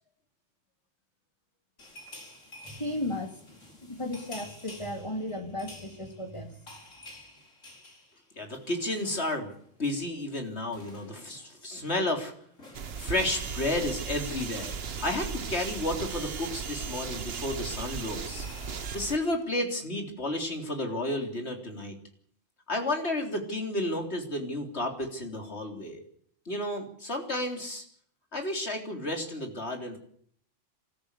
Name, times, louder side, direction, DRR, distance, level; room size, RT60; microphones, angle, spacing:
sound 1, 1.8-9.7 9.9-10.1 10.4-19.4, left 1 dB, 85° left, 5.3 m, -52 dB
voice 1, 2.6-3.4 3.9-6.6, left 1 dB, 25° left, 5 dB, 2.8 m, -35 dB
voice 2, 8.4-9.5 9.8-12.3 13.0-18.5 18.9-21.9 22.7-26.0 26.5-27.8 28.3-30.0, left 1 dB, 55° left, 3 dB, 4.0 m, -32 dB
sound 2, 12.7-19.2, right 6 dB, 55° right, 1.3 m, -36 dB
26.0 x 14.0 x 8.3 m, 0.62 s
omnidirectional pair, 1.3 m